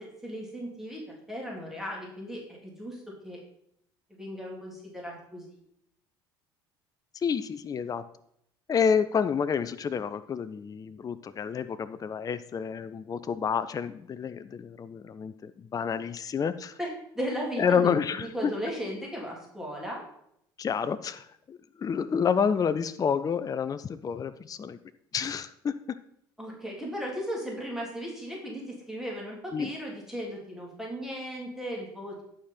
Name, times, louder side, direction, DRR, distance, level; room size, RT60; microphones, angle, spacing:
voice 1, 0.0-3.4 4.1-5.6 16.8-18.0 18.3-20.0 26.4-32.2, equal, 5° right, -2 dB, 3.5 m, -36 dB
voice 2, 7.1-8.0 8.7-16.8 17.6-18.5 20.6-24.8 25.1-26.0 29.5-29.7, left 6 dB, 30° left, 13 dB, 0.6 m, -29 dB
11.5 x 5.1 x 5.8 m, 0.72 s
hypercardioid pair, 65°, 12 cm